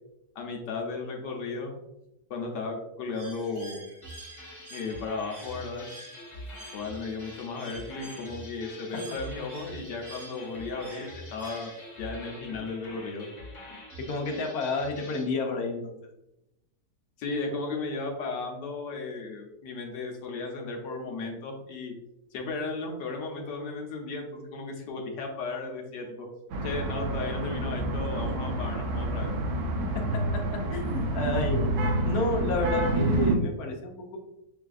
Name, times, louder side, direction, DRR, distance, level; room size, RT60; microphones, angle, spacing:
voice 1, 0.4-1.7 2.3-3.8 4.7-5.9 6.7-11.7 12.0-13.3 17.2-21.9 22.3-26.3 26.6-29.4, left 3 dB, 85° left, 1 dB, 1.3 m, -35 dB
Bird, 3.1-12.1, right 2 dB, 40° right, 1.0 m, -49 dB
sound 1, 4.0-15.3, left 1 dB, 20° left, 0.9 m, -45 dB
voice 2, 13.7-15.9 29.9-31.7 32.0-34.2, left 3 dB, 65° left, 1 dB, 1.1 m, -31 dB
sound 2, 26.5-33.3, right 2 dB, 80° right, 1.3 m, -28 dB
6.3 x 2.5 x 2.3 m, 0.89 s
omnidirectional pair, 1.8 m